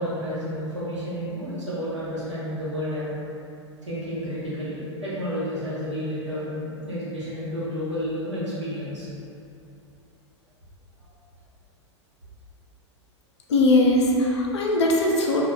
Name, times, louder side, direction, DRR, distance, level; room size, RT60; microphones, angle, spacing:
voice 1, 0.0-3.1 3.8-9.1 11.0-11.1, equal, 80° right, -11 dB, 0.8 m, -31 dB
voice 2, 13.5-15.5, left 2 dB, 65° left, -2 dB, 0.4 m, -20 dB
2.3 x 2.0 x 3.0 m, 2.7 s
figure-of-eight pair, 95°, 15 cm